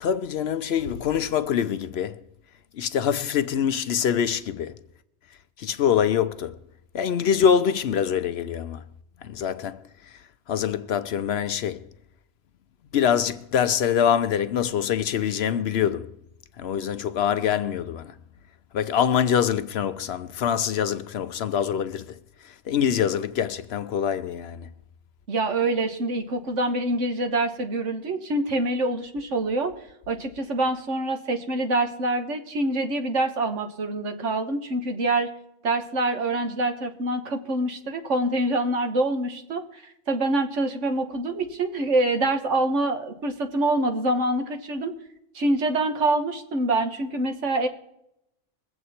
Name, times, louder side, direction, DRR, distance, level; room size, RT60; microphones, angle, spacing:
voice 1, 0.0-2.2 2.7-4.8 5.6-6.6 6.9-8.8 9.2-10.2 10.5-11.9 12.9-16.2 16.6-18.2 18.7-24.7, left 8 dB, 65° left, 0.8 m, -25 dB
voice 2, 25.3-29.7 30.1-35.3 35.6-39.8 40.1-44.9 45.3-47.7, right 2 dB, 75° right, 1.6 m, -25 dB
22.0 x 7.9 x 4.3 m
omnidirectional pair, 1.3 m